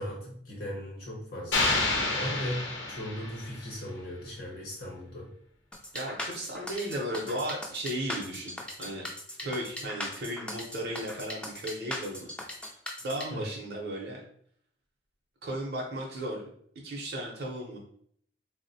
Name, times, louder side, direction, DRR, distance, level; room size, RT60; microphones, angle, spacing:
voice 1, 0.0-1.8 2.1-5.3 13.3-13.4, equal, 55° left, -3 dB, 0.8 m, -37 dB
sound 1, 1.5-3.7, left 2 dB, 90° left, 0.7 m, -29 dB
sound 2, 5.7-13.2, left 1 dB, 5° left, 0.3 m, -38 dB
voice 2, 5.9-9.1 9.4-12.3 13.0-14.2 15.4-16.4 16.8-17.8, right 1 dB, 55° right, -3 dB, 0.6 m, -35 dB
3.5 x 2.0 x 2.6 m, 0.63 s
head